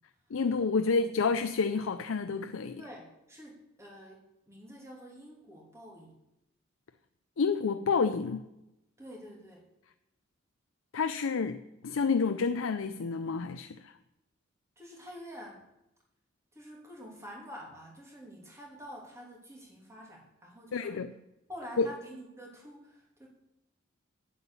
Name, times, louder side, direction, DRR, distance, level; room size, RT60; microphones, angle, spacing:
voice 1, 0.3-2.8 7.4-8.4 10.9-13.9 20.7-21.1 21.8-21.9, left 5 dB, 85° left, 0.5 m, -29 dB
voice 2, 2.8-6.1 9.0-9.7 14.8-15.7 16.5-21.0 21.5-23.3, equal, 15° right, 2.8 m, -48 dB
9.3 x 8.0 x 7.1 m
head